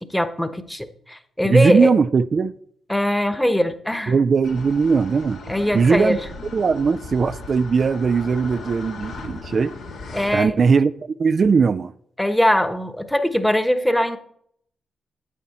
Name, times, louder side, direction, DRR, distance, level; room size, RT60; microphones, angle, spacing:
voice 1, 0.0-1.9 2.9-4.2 5.5-6.2 10.1-10.6 12.2-14.2, left 1 dB, 5° left, 1.1 m, -21 dB
voice 2, 1.4-2.5 4.1-5.4 5.7-6.2 6.5-9.8 10.3-11.9, right 5 dB, 50° right, 0.3 m, -19 dB
sound 1, 4.4-10.4, left 3 dB, 75° left, 1.7 m, -37 dB
9.2 x 8.4 x 4.2 m
hypercardioid pair, 40°, 0 cm